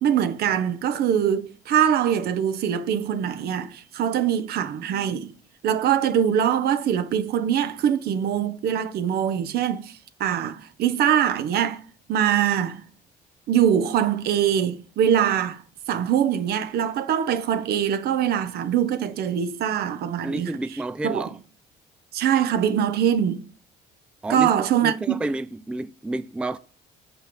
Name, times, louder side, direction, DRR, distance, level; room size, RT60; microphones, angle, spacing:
voice 1, 0.0-5.3 5.6-9.9 10.2-11.8 12.1-12.8 13.5-15.6 15.9-20.5 21.0-21.3 22.1-23.4 24.3-25.2, right 9 dB, 70° right, 1.0 m, -23 dB
voice 2, 20.2-21.3 24.2-24.5 24.8-26.6, right 2 dB, 5° right, 0.3 m, -30 dB
7.2 x 5.6 x 6.1 m
cardioid pair, 110°, 17 cm